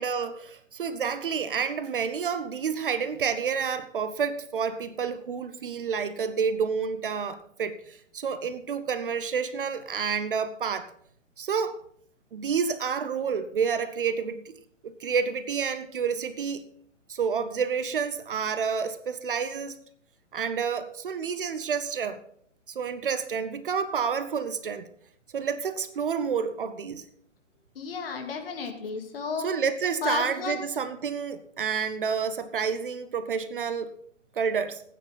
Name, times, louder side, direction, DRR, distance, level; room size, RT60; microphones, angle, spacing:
voice 1, 0.0-10.9 11.4-11.8 12.3-14.6 14.8-16.6 17.1-19.7 20.3-22.2 22.7-24.9 25.3-27.0 29.4-33.9 34.3-34.8, right 6 dB, 45° right, 13 dB, 0.8 m, -29 dB
voice 2, 27.8-29.5 30.0-30.7, left 5 dB, 45° left, 4 dB, 2.4 m, -33 dB
16.0 x 9.2 x 4.0 m, 0.65 s
figure-of-eight pair, 130°, 39 cm